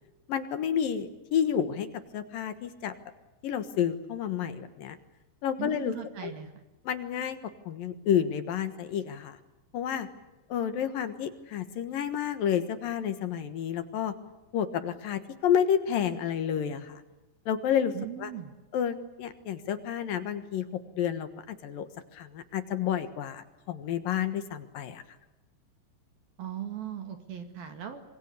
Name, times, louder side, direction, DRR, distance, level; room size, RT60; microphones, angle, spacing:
voice 1, 0.3-1.9 2.1-2.9 3.4-5.0 5.4-5.9 6.2-6.3 6.9-7.4 7.7-9.4 9.7-10.1 10.5-14.2 14.5-17.0 17.5-17.9 18.2-18.3 18.7-25.0, left 9 dB, 65° left, 10 dB, 2.7 m, -30 dB
voice 2, 5.6-6.5 17.9-18.5 26.4-28.0, right 10 dB, 60° right, 7 dB, 3.6 m, -38 dB
26.0 x 23.0 x 8.3 m, 1.0 s
omnidirectional pair, 5.3 m